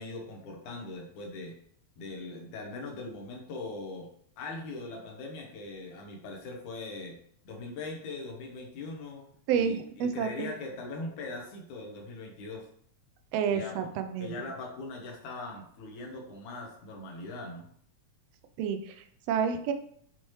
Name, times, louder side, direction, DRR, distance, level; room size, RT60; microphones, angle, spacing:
voice 1, 0.0-1.6 2.0-4.1 4.4-7.2 7.4-9.3 9.5-12.7 13.5-13.8 14.2-17.7, left 3 dB, 85° left, 1 dB, 2.6 m, -40 dB
voice 2, 9.5-10.5 13.3-14.5 18.6-19.7, right 7 dB, 80° right, 7 dB, 1.5 m, -30 dB
7.1 x 4.3 x 3.1 m, 0.63 s
omnidirectional pair, 3.4 m